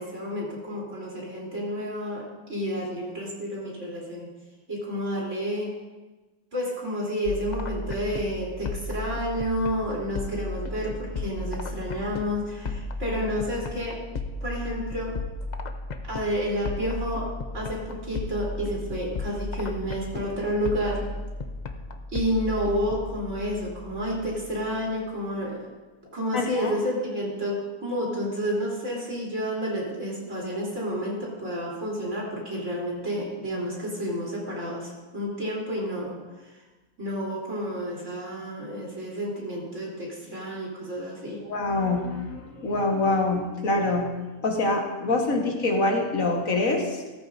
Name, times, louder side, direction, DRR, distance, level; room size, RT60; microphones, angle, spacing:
voice 1, 0.0-4.3 4.7-5.7 6.5-14.0 14.4-15.2 16.1-17.3 17.5-21.1 22.1-25.6 26.1-36.6 37.0-41.4, equal, 55° right, -4 dB, 3.8 m, -30 dB
sound 1, 7.3-24.9, left 2 dB, 45° left, 0.5 m, -35 dB
voice 2, 26.3-26.8 41.4-44.1 44.4-47.0, left 2 dB, 65° left, 1 dB, 1.7 m, -25 dB
15.5 x 14.0 x 2.6 m, 1.2 s
omnidirectional pair, 1.6 m